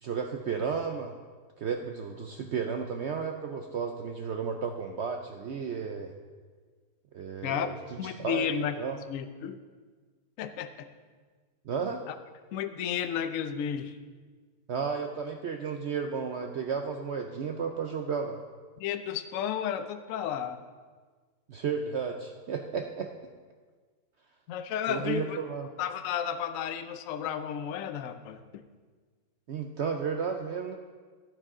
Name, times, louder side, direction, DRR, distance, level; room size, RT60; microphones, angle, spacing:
voice 1, 0.0-1.1 1.6-6.1 7.1-7.8 8.0-8.5 8.8-9.0 11.7-12.0 14.7-18.4 21.5-23.1 24.9-25.7 29.5-30.8, right 6 dB, 75° right, 4 dB, 0.6 m, -33 dB
voice 2, 8.0-9.6 10.4-10.9 12.1-12.2 12.5-14.0 18.8-20.6 24.5-25.4 25.8-28.7, left 8 dB, 65° left, 10 dB, 0.8 m, -33 dB
13.0 x 8.9 x 3.7 m, 1.5 s
omnidirectional pair, 1.8 m